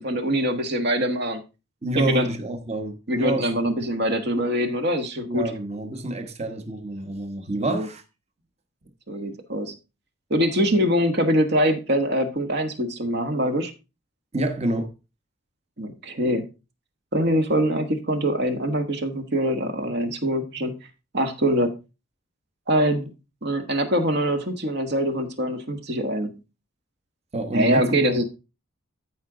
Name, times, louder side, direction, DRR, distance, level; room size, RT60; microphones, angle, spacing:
voice 1, 0.0-1.4 1.9-2.3 3.1-5.5 7.6-7.9 9.1-9.8 10.3-13.7 15.8-16.4 17.1-20.7 21.1-21.8 22.7-23.1 23.4-26.3 27.5-28.3, equal, 50° right, 1.3 m, -23 dB
voice 2, 1.8-4.1 5.2-8.0 14.3-14.9 27.3-28.3, right 1 dB, 30° right, 1.2 m, -28 dB
13.5 x 4.9 x 3.8 m
head